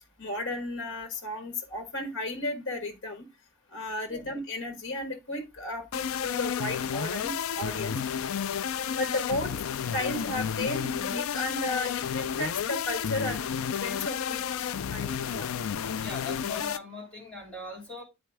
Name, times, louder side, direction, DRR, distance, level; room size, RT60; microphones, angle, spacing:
voice 1, 0.2-3.3 3.7-8.0 9.0-9.5 9.9-13.4 13.8-15.5, left 2 dB, 65° left, 1.3 m, -34 dB
sound 1, 5.9-16.8, left 8 dB, 80° left, 0.4 m, -31 dB
voice 2, 16.0-18.0, left 2 dB, 5° left, 3.1 m, -40 dB
9.2 x 4.3 x 3.3 m
head